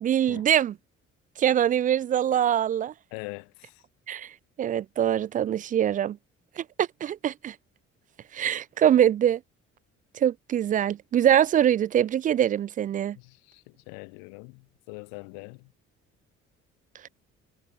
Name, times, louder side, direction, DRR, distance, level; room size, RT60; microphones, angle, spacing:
voice 1, 0.0-0.7 1.4-2.9 4.1-4.3 4.6-6.2 6.6-7.5 8.3-9.4 10.1-13.2, right 10 dB, 25° right, 0.3 m, -23 dB
voice 2, 3.1-3.8 13.2-15.7, left 40 dB or more, 65° left, 7.5 m, -43 dB
figure-of-eight pair, 45°, 38 cm